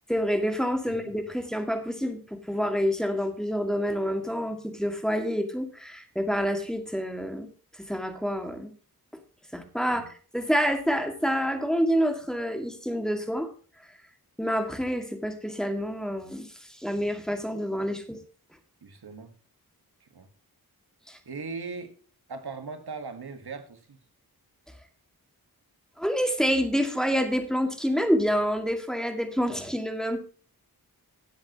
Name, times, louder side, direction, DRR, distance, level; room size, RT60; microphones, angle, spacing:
voice 1, 0.1-7.5 7.8-8.7 9.5-10.0 10.3-13.5 14.4-16.5 16.8-18.2 21.1-21.2 26.0-30.2, equal, ahead, 5 dB, 2.2 m, -27 dB
voice 2, 18.8-19.3 20.0-20.3 21.1-21.9 22.3-24.0, right 4 dB, 85° right, 8 dB, 1.7 m, -39 dB
17.5 x 7.9 x 3.0 m, 0.40 s
wide cardioid pair, 90°, 38 cm